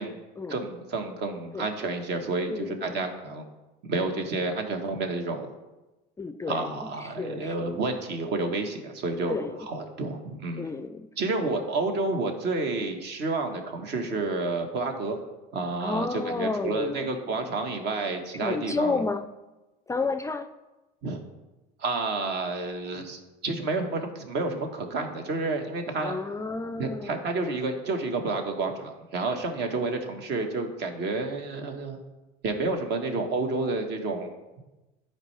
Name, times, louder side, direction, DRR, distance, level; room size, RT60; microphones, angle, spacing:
voice 1, 0.5-3.5 3.8-5.5 6.5-9.4 9.7-10.6 11.2-15.2 15.5-18.9 21.0-21.2 21.8-26.2 26.8-32.0 32.4-34.3, right 3 dB, 55° right, 4 dB, 1.3 m, -30 dB
voice 2, 2.5-3.0 6.2-7.7 9.3-9.7 10.6-11.1 11.4-11.5 15.8-17.1 17.3-17.4 18.4-19.3 19.9-20.5 25.9-27.2, left 3 dB, 15° left, 9 dB, 0.4 m, -31 dB
10.5 x 4.5 x 3.3 m, 1.1 s
supercardioid pair, 90°, 20 cm